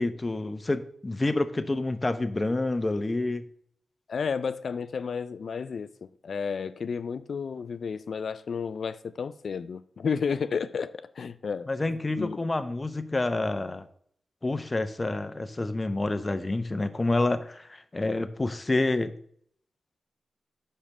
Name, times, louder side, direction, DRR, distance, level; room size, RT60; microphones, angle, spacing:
voice 1, 0.0-3.5 11.7-13.8 14.4-19.2, left 2 dB, 30° left, 0.7 m, -28 dB
voice 2, 4.1-11.9 12.2-12.4, left 6 dB, 70° left, 0.3 m, -32 dB
5.6 x 5.0 x 5.9 m
cardioid pair, 55°, 0 cm